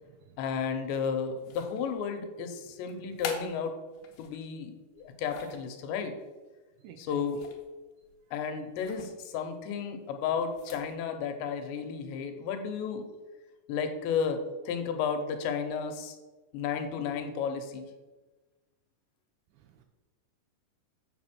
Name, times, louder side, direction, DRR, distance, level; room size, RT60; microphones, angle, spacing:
voice 1, 0.4-3.8 4.2-6.2 7.0-7.4 8.3-13.1 13.7-16.2 16.5-17.9, left 6 dB, 85° left, 5 dB, 3.1 m, -33 dB
sound 1, 1.4-2.0 2.9-4.4 5.0-5.7 7.2-7.8 8.0-8.2 8.8-9.1 10.4-10.9, left 6 dB, 65° left, 2.6 m, -43 dB
voice 2, 6.8-7.2 19.8-19.9, right 9 dB, 80° right, 6 dB, 2.6 m, -49 dB
8.2 x 6.8 x 6.1 m, 1.2 s
omnidirectional pair, 5.1 m